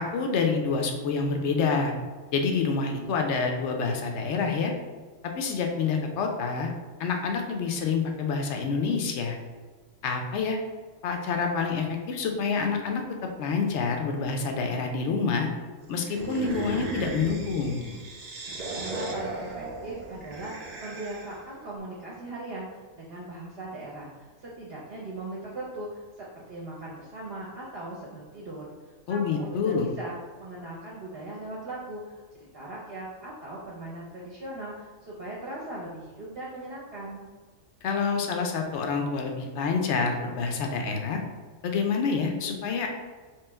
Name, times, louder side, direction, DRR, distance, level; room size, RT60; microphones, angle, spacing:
voice 1, 0.0-1.9 2.3-4.7 5.4-6.7 7.0-9.4 10.0-10.6 11.0-13.0 13.4-15.5 15.9-17.8 29.1-29.9 37.8-41.2 41.6-42.9, left 5 dB, 70° left, 3 dB, 0.8 m, -27 dB
sound 1, 16.0-21.5, right 2 dB, 75° right, 0.3 m, -36 dB
voice 2, 18.7-37.2, right 2 dB, 55° right, -6 dB, 0.8 m, -39 dB
3.0 x 2.9 x 3.4 m, 1.4 s
omnidirectional pair, 1.4 m